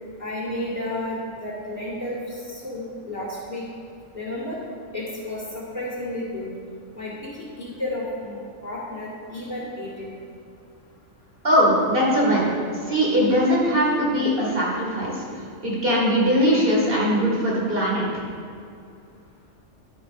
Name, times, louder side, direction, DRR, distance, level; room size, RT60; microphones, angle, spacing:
voice 1, 0.2-3.7 4.1-4.6 4.9-6.5 6.9-10.1, left 1 dB, 35° left, -9 dB, 2.4 m, -32 dB
voice 2, 11.4-12.4 12.9-15.2 15.6-18.0, equal, 45° right, -5 dB, 2.6 m, -20 dB
11.0 x 6.1 x 5.3 m, 2.4 s
omnidirectional pair, 1.3 m